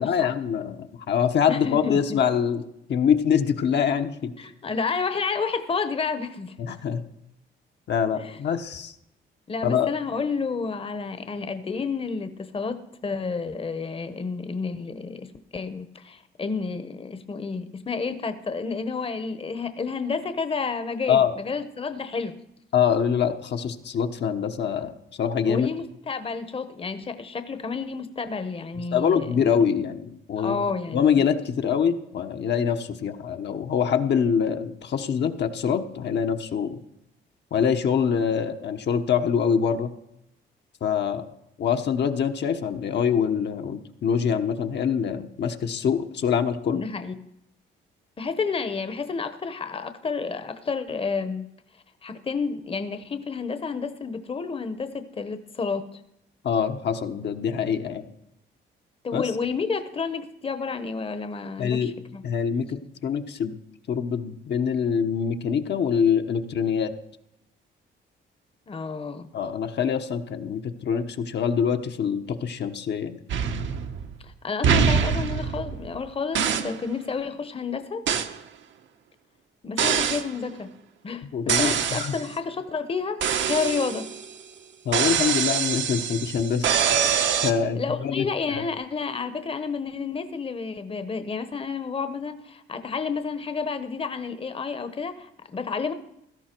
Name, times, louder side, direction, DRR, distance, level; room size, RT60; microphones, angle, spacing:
voice 1, 0.0-2.6 2.9-4.3 6.6-7.0 7.9-8.9 9.6-9.9 21.1-21.3 22.7-25.7 28.9-30.6 30.9-36.8 37.5-39.9 40.8-41.3 41.6-46.8 56.4-58.0 59.1-59.2 61.6-61.9 62.2-63.6 63.9-66.9 69.3-73.2 81.3-82.2 84.8-86.7 87.4-88.6, left 7 dB, 60° left, 5 dB, 1.1 m, -24 dB
voice 2, 1.5-2.2 4.4-6.5 8.2-8.4 9.5-15.3 15.5-22.3 25.5-29.4 30.4-31.2 46.7-47.1 48.2-51.5 52.0-56.0 59.0-62.2 68.7-69.3 74.2-78.0 79.6-80.7 81.0-84.1 87.7-95.9, left 5 dB, 30° left, 10 dB, 1.0 m, -30 dB
sound 1, 73.3-74.2 74.6-76.0 76.3-76.8 78.1-78.4 79.8-80.3 81.5-82.3 83.2-84.3 84.9-87.5, right 7 dB, 70° right, 1.2 m, -24 dB
16.5 x 13.0 x 4.5 m, 0.82 s
cardioid pair, 90°, 20 cm